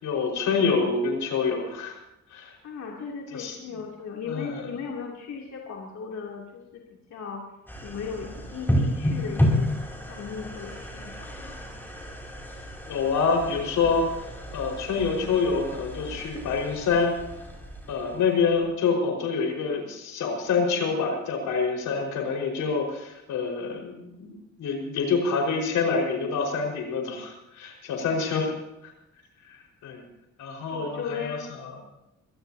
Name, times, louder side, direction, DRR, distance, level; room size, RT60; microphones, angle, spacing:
voice 1, 0.0-2.0 2.3-2.5 3.3-3.6 4.3-4.7 12.9-14.1 14.5-17.1 17.9-28.5 28.8-28.9 29.5-30.0 30.4-31.8, left 5 dB, 80° left, 1 dB, 5.1 m, -26 dB
voice 2, 2.6-6.8 7.1-7.4 7.8-9.7 10.1-11.5 30.7-31.5, left 6 dB, 65° left, -2 dB, 3.1 m, -36 dB
sound 1, 7.7-18.7, equal, 5° left, 5.3 m, -31 dB
25.5 x 16.5 x 2.9 m, 0.92 s
cardioid pair, 90°, 30 cm